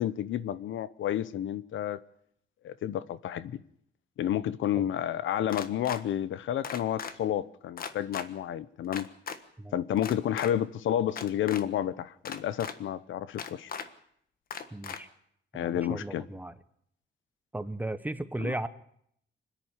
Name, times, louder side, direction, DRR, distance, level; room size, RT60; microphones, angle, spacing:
voice 1, 0.0-2.0 2.6-3.6 4.2-9.1 9.7-13.7 15.5-16.2 18.5-18.6, left 11 dB, 70° left, 0.9 m, -30 dB
sound 1, 5.5-6.0 6.6-7.1 7.8-8.3 8.9-9.4 10.0-10.5 11.1-11.6 12.3-12.7 13.4-13.9 14.5-15.0, left 7 dB, 45° left, 1.4 m, -37 dB
voice 2, 14.7-15.1 15.5-16.5 17.5-18.7, right 1 dB, 10° right, 0.8 m, -36 dB
26.0 x 10.5 x 9.9 m
cardioid pair, 160°, 20 cm